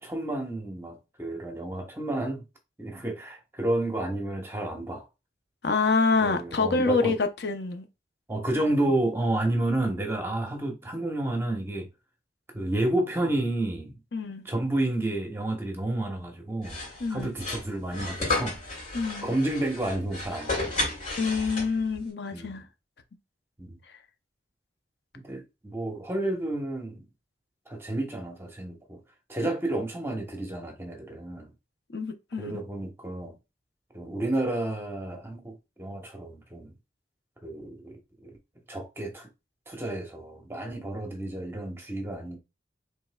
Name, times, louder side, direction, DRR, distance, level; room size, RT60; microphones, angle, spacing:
voice 1, 0.0-2.4 2.8-5.1 6.2-7.1 8.3-11.9 12.5-14.0 14.4-16.8 17.1-18.6 19.2-20.8 22.3-22.6 23.6-23.8 25.2-27.1 27.7-29.0 29.3-31.5 32.4-33.3 33.9-36.7 37.4-38.3 38.7-39.3 39.7-42.4, right 1 dB, 15° right, 0.9 m, -30 dB
voice 2, 5.6-7.9 14.1-14.4 17.0-17.3 18.9-19.3 21.2-22.6 31.9-32.6, left 4 dB, 65° left, 0.6 m, -26 dB
sound 1, 16.6-22.0, left 2 dB, 40° left, 2.6 m, -33 dB
5.4 x 3.3 x 2.2 m
head